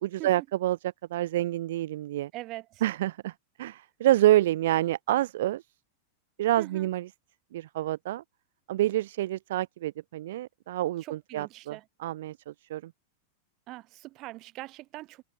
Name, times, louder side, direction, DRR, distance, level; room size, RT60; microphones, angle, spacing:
voice 1, 0.0-2.3 2.8-3.3 3.6-5.6 6.4-7.1 7.5-8.2 8.7-12.9, right 14 dB, 55° right, 0.5 m, -27 dB
voice 2, 2.3-2.8 6.6-6.9 11.0-11.8 13.7-15.2, right 18 dB, 40° right, 4.6 m, -42 dB
figure-of-eight pair, 90°, 0 cm